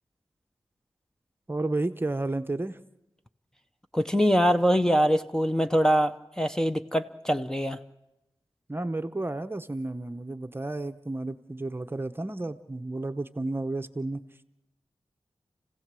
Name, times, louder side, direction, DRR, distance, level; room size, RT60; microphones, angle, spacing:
voice 1, 1.5-2.8 8.7-14.2, right 2 dB, 20° right, 10 dB, 0.8 m, -32 dB
voice 2, 3.9-7.8, equal, 5° left, 5 dB, 0.7 m, -23 dB
29.5 x 16.5 x 7.6 m, 0.92 s
wide cardioid pair, 110°, 10 cm